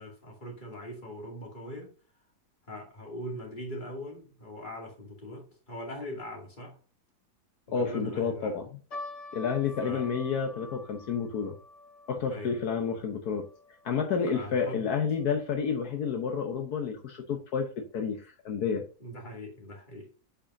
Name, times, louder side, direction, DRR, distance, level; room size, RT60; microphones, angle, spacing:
voice 1, 0.0-1.9 2.7-6.8 7.7-8.6 9.8-10.1 10.7-10.8 12.3-12.6 14.3-14.8 19.0-20.1, equal, 30° left, -1 dB, 2.7 m, -41 dB
voice 2, 7.7-8.6 9.3-11.6 12.1-13.4 13.8-18.8, left 6 dB, 75° left, 3 dB, 1.5 m, -30 dB
sound 1, 8.9-15.4 15.7-15.8 16.5-16.8 17.4-17.5 17.8-18.0, left 2 dB, 50° left, 1.9 m, -47 dB
8.6 x 5.5 x 2.7 m, 0.37 s
omnidirectional pair, 1.7 m